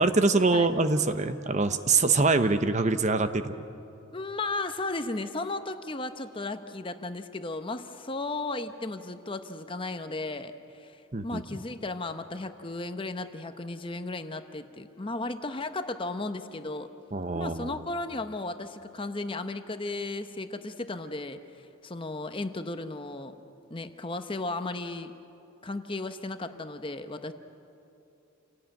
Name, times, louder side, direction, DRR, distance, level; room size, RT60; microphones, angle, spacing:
voice 1, 0.0-3.7 11.1-11.4 17.1-17.8, right 3 dB, 35° right, 10 dB, 0.8 m, -24 dB
voice 2, 4.1-16.9 17.3-23.3 23.7-25.1 25.6-27.3, left 2 dB, 25° left, 8 dB, 0.9 m, -35 dB
28.0 x 18.0 x 8.9 m, 2.7 s
head